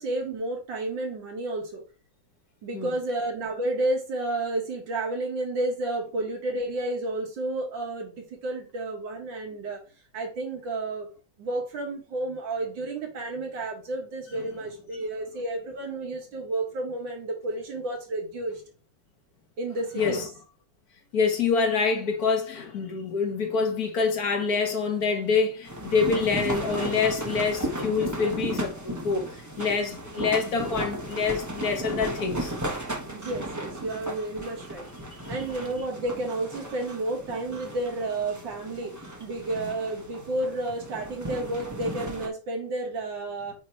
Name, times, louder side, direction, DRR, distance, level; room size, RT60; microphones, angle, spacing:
voice 1, 0.0-1.8 2.6-9.8 10.1-11.1 11.4-18.6 19.6-20.2 33.1-34.9 35.3-38.9 39.2-43.5, right 2 dB, 75° right, 2.3 m, -31 dB
voice 2, 20.0-20.3 21.1-32.5 39.6-39.7, left 5 dB, 55° left, 1.6 m, -26 dB
sound 1, 25.6-42.3, right 1 dB, 15° right, 0.7 m, -35 dB
8.5 x 3.0 x 4.5 m
omnidirectional pair, 2.1 m